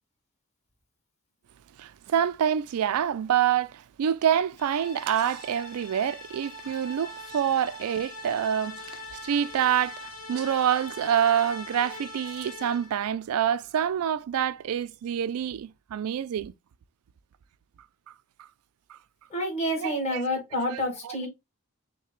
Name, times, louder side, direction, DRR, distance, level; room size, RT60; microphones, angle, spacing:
voice 1, 1.8-16.5 18.9-19.0 19.8-20.2 20.7-21.2, right 9 dB, 85° right, 0.3 m, -27 dB
sound 1, 4.6-13.0, left 1 dB, 75° left, 1.2 m, -42 dB
voice 2, 19.3-21.3, equal, 30° left, 1.5 m, -28 dB
5.6 x 2.2 x 3.0 m
head